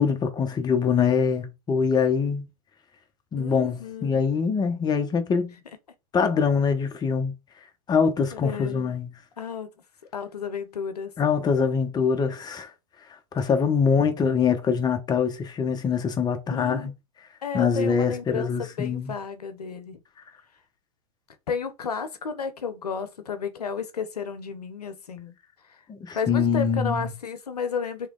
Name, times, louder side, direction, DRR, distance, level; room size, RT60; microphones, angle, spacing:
voice 1, 0.0-2.4 3.3-5.5 6.1-7.3 7.9-9.1 11.2-12.7 13.3-16.9 17.5-19.1 25.9-27.1, left 6 dB, 20° left, 1.0 m, -24 dB
voice 2, 3.4-4.2 8.3-8.9 9.4-9.7 10.1-11.1 16.5-16.9 17.4-20.0 21.5-25.3 25.7-25.8 26.1-28.1, left 6 dB, 90° left, 0.8 m, -32 dB
3.3 x 3.2 x 3.8 m
hypercardioid pair, 105°, 20 cm